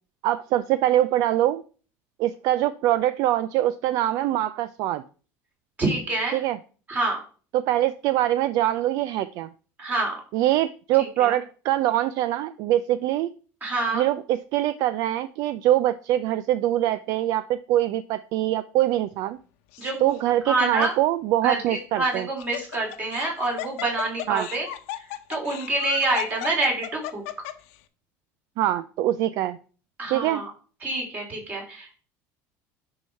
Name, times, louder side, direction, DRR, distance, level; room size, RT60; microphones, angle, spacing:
voice 1, 0.2-1.6 2.2-5.0 6.3-6.6 7.5-9.5 10.3-13.3 13.9-19.4 20.0-22.3 24.3-24.5 28.6-29.6 30.1-30.4, right 13 dB, 55° right, 14 dB, 0.5 m, -23 dB
voice 2, 5.8-6.4 6.9-7.2 9.8-10.2 11.0-11.4 13.6-14.0 19.8-19.9 20.5-20.9 21.4-24.7 25.3-27.2 30.0-30.5 30.8-32.0, right 2 dB, 25° right, 0 dB, 3.6 m, -27 dB
Laughter, 19.7-20.2 20.8-20.9 22.1-27.7, left 14 dB, 85° left, 1.0 m, -35 dB
9.9 x 4.8 x 5.4 m, 0.39 s
cardioid pair, 155°, 7 cm